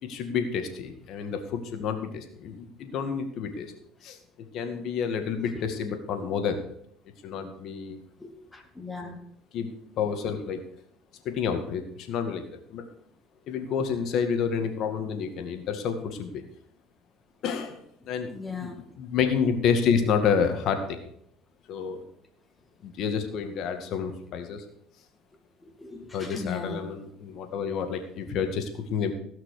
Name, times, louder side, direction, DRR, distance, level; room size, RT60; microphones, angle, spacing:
voice 1, 0.0-3.7 4.0-4.2 4.5-6.7 7.2-8.0 9.5-10.6 11.2-12.9 13.5-16.4 17.4-18.3 18.6-21.1 21.7-22.0 22.8-24.6 26.1-29.1, left 6 dB, 60° left, 6 dB, 2.1 m, -29 dB
voice 2, 8.2-9.2 18.3-18.7 25.8-26.8, left 4 dB, 15° left, 4 dB, 2.6 m, -37 dB
16.5 x 5.9 x 6.7 m, 0.69 s
supercardioid pair, 95°, 0 cm